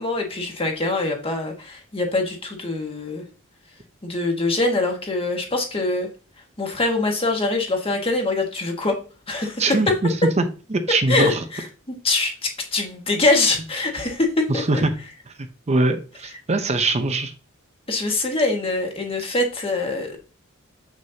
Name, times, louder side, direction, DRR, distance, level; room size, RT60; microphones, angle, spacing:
voice 1, 0.0-3.2 4.0-6.1 6.6-9.0 9.3-10.0 11.1-14.6 17.9-20.2, left 2 dB, 25° left, 1.6 m, -23 dB
voice 2, 9.6-9.9 10.4-10.5 10.7-11.4 14.5-14.9 15.7-17.3, right 2 dB, 30° right, 0.6 m, -21 dB
7.3 x 6.2 x 2.8 m
head